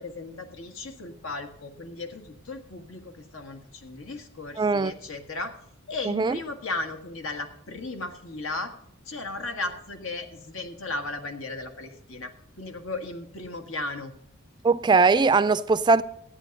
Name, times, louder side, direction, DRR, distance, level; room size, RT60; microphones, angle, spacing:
voice 1, 0.0-5.5 5.9-8.7 9.0-12.3 12.6-14.1, left 2 dB, 90° left, 1.6 m, -36 dB
voice 2, 4.6-4.9 6.1-6.4 14.6-16.0, right 4 dB, 20° right, 0.3 m, -20 dB
13.5 x 9.0 x 5.3 m
head